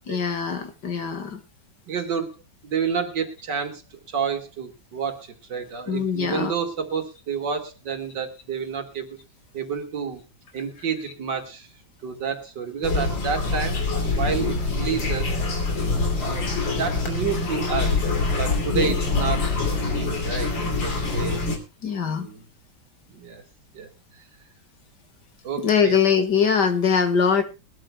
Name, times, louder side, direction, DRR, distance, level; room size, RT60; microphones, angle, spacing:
voice 1, 0.1-1.4 5.9-6.5 18.7-18.9 21.8-22.3 25.6-27.4, left 6 dB, 60° left, 8 dB, 2.2 m, -22 dB
voice 2, 1.9-2.4 2.6-9.2 9.5-10.2 10.5-11.7 12.0-13.8 14.2-15.3 16.2-19.5 19.8-21.4 22.0-22.4 23.1-23.4 23.7-24.2 25.4-26.0 26.3-26.4, right 6 dB, 65° right, 5 dB, 2.8 m, -30 dB
sound 1, 12.8-21.6, left 3 dB, 80° left, 3.5 m, -25 dB
22.0 x 13.0 x 2.3 m, 0.28 s
omnidirectional pair, 2.0 m